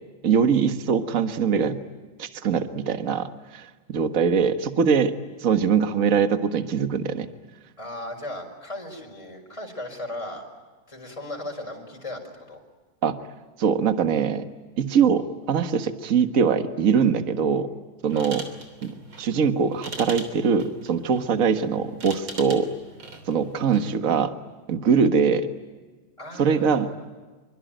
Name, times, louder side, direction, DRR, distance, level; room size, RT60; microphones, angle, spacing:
voice 1, 0.2-1.8 2.2-5.1 5.4-7.3 13.0-13.2 13.6-14.4 14.8-17.7 18.0-18.4 18.8-22.7 23.3-24.3 24.7-25.5 26.4-26.9, right 6 dB, 45° right, 8 dB, 1.7 m, -22 dB
voice 2, 7.8-10.5 10.9-12.6 18.1-18.3 26.2-27.0, left 1 dB, 15° left, 1 dB, 5.5 m, -37 dB
sound 1, 18.1-24.0, right 3 dB, 85° right, 4.2 m, -41 dB
26.0 x 25.0 x 9.1 m, 1.3 s
omnidirectional pair, 2.2 m